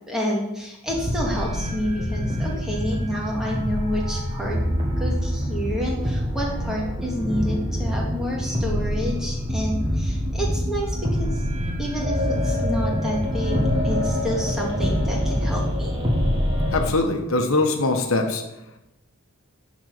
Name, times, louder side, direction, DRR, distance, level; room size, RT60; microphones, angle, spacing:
voice 1, 0.1-4.6 5.0-11.4 11.8-13.6 13.8-16.0, equal, ahead, -3 dB, 1.9 m, -29 dB
sound 1, 0.9-16.9, equal, 25° right, 1.6 m, -25 dB
voice 2, 16.7-18.4, left 2 dB, 70° left, 4 dB, 1.1 m, -22 dB
10.5 x 4.2 x 6.5 m, 0.90 s
head